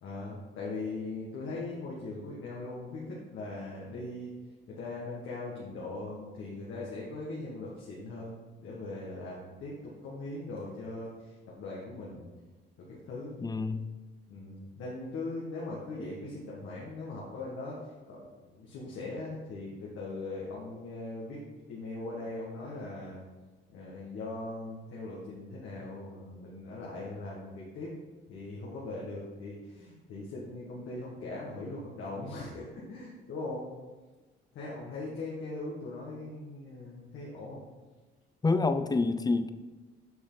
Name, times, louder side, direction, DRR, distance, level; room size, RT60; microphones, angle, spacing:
voice 1, 0.0-4.3 4.7-12.3 12.9-13.4 14.3-17.8 18.1-23.2 23.7-27.9 28.3-33.7 34.5-37.6, left 2 dB, 85° left, -5 dB, 1.6 m, -40 dB
voice 2, 13.4-13.9 38.4-39.5, left 3 dB, 20° left, 10 dB, 0.5 m, -27 dB
7.9 x 5.6 x 4.0 m, 1.2 s
cardioid pair, 90°, 20 cm